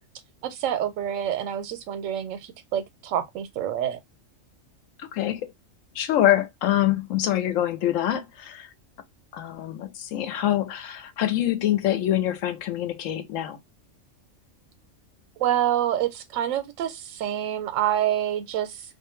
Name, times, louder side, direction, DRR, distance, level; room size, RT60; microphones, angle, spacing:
voice 1, 0.4-4.0 15.4-18.8, right 11 dB, 80° right, 0.9 m, -27 dB
voice 2, 5.0-5.5 5.9-8.7 9.3-13.6, left 12 dB, 90° left, 1.0 m, -25 dB
2.4 x 2.1 x 3.0 m
omnidirectional pair, 1.3 m